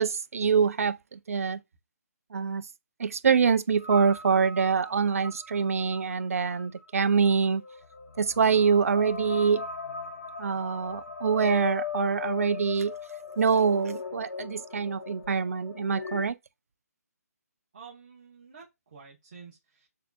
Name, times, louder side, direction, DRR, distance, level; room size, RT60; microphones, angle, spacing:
voice 1, 0.0-1.6 2.3-2.6 3.0-7.6 8.2-9.6 10.4-12.9 13.4-16.4, right 6 dB, 60° right, 0.4 m, -25 dB
sound 1, 3.8-16.3, left 5 dB, 80° left, 1.0 m, -39 dB
voice 2, 17.7-19.9, right 6 dB, 30° right, 0.9 m, -50 dB
6.7 x 2.6 x 2.3 m
hypercardioid pair, 175°, 9 cm